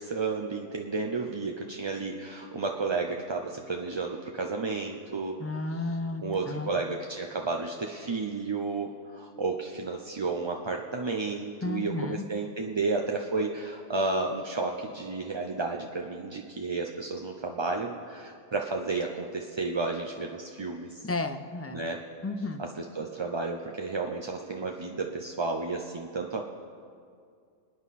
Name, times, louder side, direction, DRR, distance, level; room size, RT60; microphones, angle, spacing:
voice 1, 0.0-5.4 6.2-21.0 21.7-22.0 22.8-26.4, right 3 dB, 30° right, 2 dB, 0.6 m, -32 dB
voice 2, 5.4-6.8 11.6-12.3 21.0-21.8 22.2-22.6, left 2 dB, 25° left, 9 dB, 0.3 m, -33 dB
27.0 x 9.4 x 4.2 m, 2.3 s
omnidirectional pair, 1.2 m